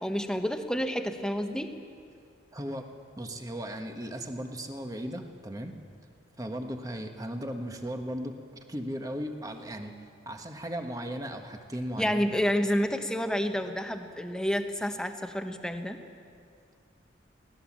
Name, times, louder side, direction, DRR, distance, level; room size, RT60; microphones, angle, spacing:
voice 1, 0.0-1.7 12.0-16.0, equal, 5° left, 6 dB, 1.1 m, -29 dB
voice 2, 2.5-2.9 3.2-5.8 6.4-8.4 8.7-10.0 10.2-12.2, equal, 20° right, 5 dB, 1.4 m, -36 dB
23.5 x 18.0 x 7.4 m, 2.3 s
head